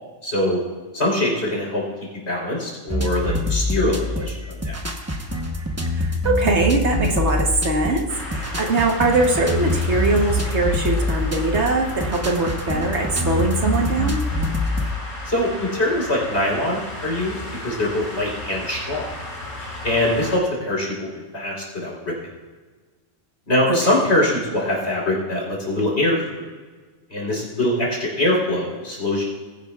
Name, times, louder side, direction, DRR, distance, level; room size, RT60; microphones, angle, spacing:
voice 1, 0.2-0.6 0.9-1.8 2.3-4.8 15.2-17.4 17.6-19.1 19.8-21.0 21.3-22.2 23.5-26.4 27.1-29.2, left 1 dB, 55° left, -3 dB, 4.0 m, -23 dB
sound 1, 2.9-14.9, left 2 dB, 15° right, 0.9 m, -25 dB
voice 2, 6.0-14.2 23.7-23.8, right 3 dB, 60° right, 2 dB, 1.5 m, -21 dB
sound 2, 8.1-20.4, left 1 dB, 80° left, 3.4 m, -35 dB
20.0 x 10.5 x 2.4 m, 1.4 s
omnidirectional pair, 1.3 m